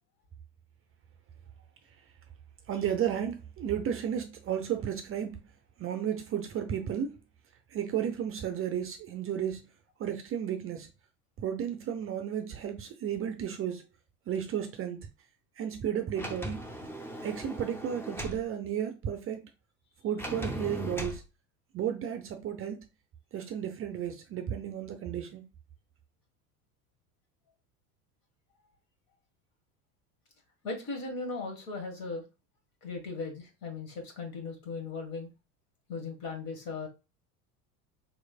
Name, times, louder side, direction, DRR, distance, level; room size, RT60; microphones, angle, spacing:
voice 1, 2.7-5.4 5.8-7.2 7.7-9.7 10.0-10.9 11.4-13.8 14.3-15.1 15.6-16.6 17.2-19.4 20.0-21.2 21.7-22.8 23.3-25.4, right 9 dB, 30° right, 0.6 m, -33 dB
Sliding door, 16.1-18.4 20.2-21.2, equal, 5° left, 0.7 m, -38 dB
voice 2, 30.6-32.2 32.8-35.3 35.9-36.9, left 3 dB, 50° left, 1.6 m, -37 dB
4.1 x 3.2 x 2.4 m
hypercardioid pair, 75°, 44 cm